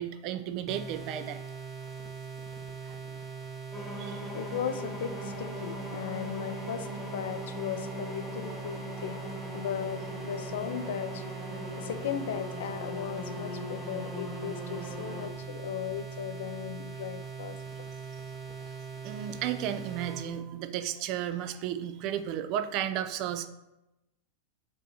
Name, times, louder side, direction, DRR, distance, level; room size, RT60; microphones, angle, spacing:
voice 1, 0.0-1.4 2.8-3.0 4.0-4.3 18.6-18.7 19.0-23.5, right 10 dB, 45° right, 9 dB, 0.3 m, -33 dB
sound 1, 0.7-20.3, right 6 dB, 5° right, 0.7 m, -41 dB
sound 2, 3.7-15.3, left 1 dB, 10° left, 1.2 m, -40 dB
voice 2, 4.3-9.2 9.5-11.2 11.8-17.6, left 9 dB, 65° left, 10 dB, 0.3 m, -37 dB
6.2 x 2.8 x 2.8 m, 0.95 s
hypercardioid pair, 95°, 0 cm